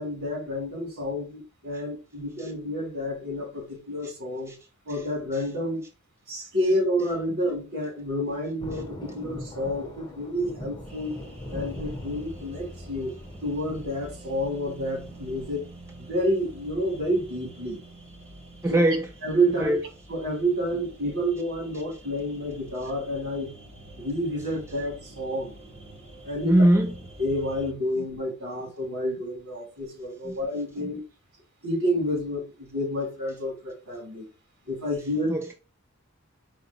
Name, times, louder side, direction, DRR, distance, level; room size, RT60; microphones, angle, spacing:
voice 1, 0.0-4.5 4.8-5.8 6.3-11.2 11.5-13.1 13.4-15.6 16.0-17.8 18.7-18.8 19.2-19.8 20.1-23.5 24.0-25.5 26.2-26.5 27.2-31.0 31.6-34.2 34.7-35.3, equal, 65° right, 2.5 m, -29 dB
Thunder, 8.6-15.6, left 1 dB, 20° left, 0.7 m, -41 dB
sound 1, 10.8-27.7, right 1 dB, 30° right, 1.0 m, -46 dB
voice 2, 18.6-19.1 19.6-19.8 26.4-27.0 30.2-30.4 30.8-30.9 35.3-35.5, right 1 dB, 10° right, 0.4 m, -23 dB
4.9 x 2.1 x 4.0 m
head